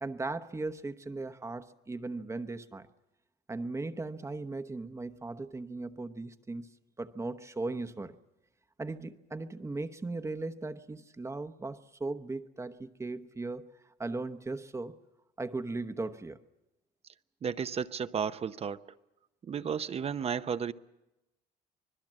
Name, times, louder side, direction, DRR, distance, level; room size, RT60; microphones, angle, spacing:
voice 1, 0.0-2.9 3.5-6.7 7.0-8.2 8.8-13.7 14.0-14.9 15.4-16.4, right 3 dB, 15° right, 1.0 m, -37 dB
voice 2, 17.4-18.8 19.4-20.7, right 7 dB, 35° right, 0.8 m, -33 dB
25.5 x 20.5 x 7.6 m
cardioid pair, 110°, 17 cm